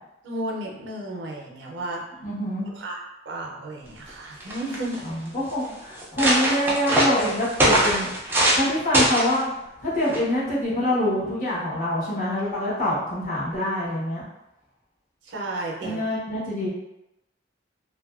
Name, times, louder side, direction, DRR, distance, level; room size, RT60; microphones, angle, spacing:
voice 1, 0.2-2.0 2.7-3.0 3.3-5.2 15.2-16.0, right 1 dB, 80° right, -1 dB, 0.5 m, -33 dB
voice 2, 2.2-2.7 5.0-8.1 8.5-9.5 9.8-14.2 15.8-16.7, left 1 dB, 45° left, -8 dB, 0.9 m, -25 dB
sound 1, 4.1-4.2 4.4-5.0 5.6-5.7 6.0-8.7 8.9-9.4 10.1-10.4, right 1 dB, 10° right, 0.3 m, -22 dB
2.5 x 2.2 x 2.3 m, 0.89 s
head